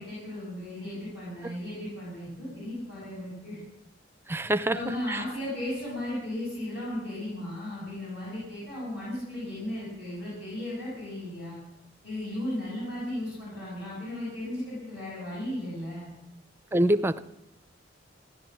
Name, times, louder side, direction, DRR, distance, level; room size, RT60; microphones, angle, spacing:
voice 1, 0.0-3.6 4.7-11.6 12.0-16.1, left 1 dB, 60° left, -8 dB, 7.6 m, -35 dB
voice 2, 4.3-4.8 5.1-5.2 16.7-17.2, right 1 dB, 10° right, 12 dB, 0.5 m, -24 dB
16.5 x 11.0 x 7.5 m, 0.84 s
head